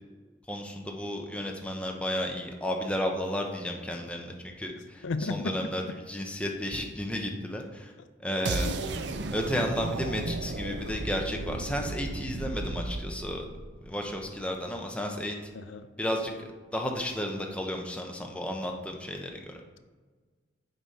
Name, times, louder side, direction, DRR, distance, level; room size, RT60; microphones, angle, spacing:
voice 1, 0.5-7.9 8.2-8.7 9.3-13.5 13.8-15.4 16.0-19.6, equal, 5° left, 1 dB, 0.7 m, -33 dB
voice 2, 5.0-5.6 8.6-8.8 15.5-15.9, left 3 dB, 85° left, 11 dB, 0.5 m, -33 dB
sound 1, 8.4-14.4, right 2 dB, 65° right, 0.6 m, -34 dB
9.3 x 5.0 x 4.2 m, 1.4 s
head